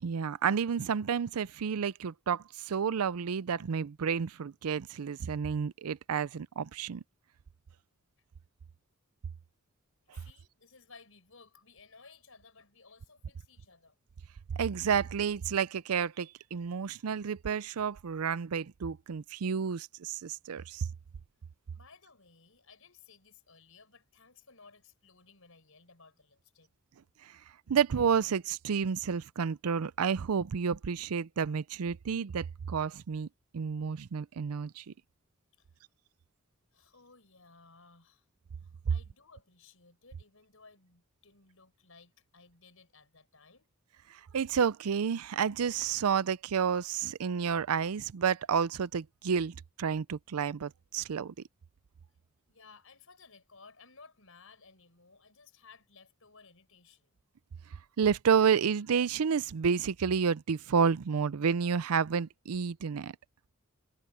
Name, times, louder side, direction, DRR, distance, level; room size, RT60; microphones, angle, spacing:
voice 1, 0.0-7.0 10.1-10.2 14.6-20.9 27.2-27.4 27.7-33.3 33.5-34.9 44.1-51.3 58.0-63.1, right 6 dB, 90° right, 0.5 m, -30 dB
voice 2, 10.1-13.9 21.7-26.7 35.6-35.7 36.7-38.3 38.6-43.7 52.5-57.1, left 4 dB, 70° left, 4.8 m, -58 dB
head